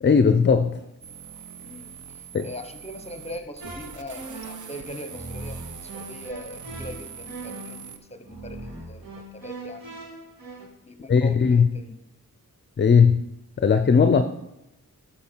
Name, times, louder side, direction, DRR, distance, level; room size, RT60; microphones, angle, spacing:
voice 1, 0.0-0.8 2.3-2.5 11.1-11.7 12.8-13.2 13.6-14.2, left 6 dB, 35° left, 9 dB, 0.5 m, -18 dB
sound 1, 1.0-8.0, right 8 dB, 60° right, 0.6 m, -43 dB
voice 2, 1.6-10.0 10.9-12.0, left 1 dB, 20° left, 8 dB, 1.0 m, -41 dB
sound 2, 3.6-10.7, right 2 dB, 80° right, 2.7 m, -40 dB
12.5 x 4.4 x 4.5 m, 0.91 s
wide cardioid pair, 65°, 34 cm